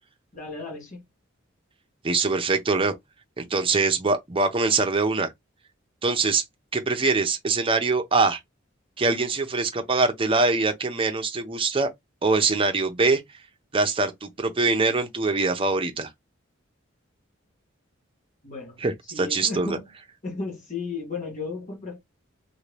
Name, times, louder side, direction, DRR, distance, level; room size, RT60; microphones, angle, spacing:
voice 1, 0.3-1.0 18.4-18.8 19.1-19.9 20.2-22.0, left 3 dB, 40° left, 1.4 m, -34 dB
voice 2, 2.0-2.9 3.4-5.3 6.0-6.4 6.7-8.4 9.0-11.9 12.2-13.2 13.7-16.1 18.8-19.8, right 3 dB, 25° right, 0.7 m, -23 dB
2.7 x 2.6 x 3.2 m
head